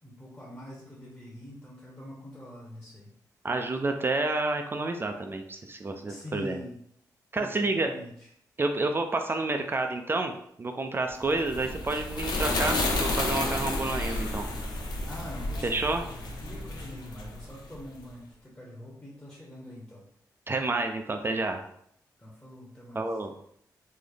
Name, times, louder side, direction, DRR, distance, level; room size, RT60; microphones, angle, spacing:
voice 1, 0.0-3.1 6.1-6.8 7.4-8.3 15.0-15.8 16.2-20.0 22.2-23.0, left 1 dB, 15° left, -5 dB, 0.9 m, -44 dB
voice 2, 3.4-6.6 7.3-7.9 8.6-14.5 15.6-16.0 20.5-21.6 22.9-23.3, right 2 dB, 30° right, 5 dB, 0.4 m, -29 dB
sound 1, 11.2-17.8, left 2 dB, 80° left, 0.7 m, -31 dB
3.2 x 2.0 x 3.8 m, 0.69 s
cardioid pair, 70°, 7 cm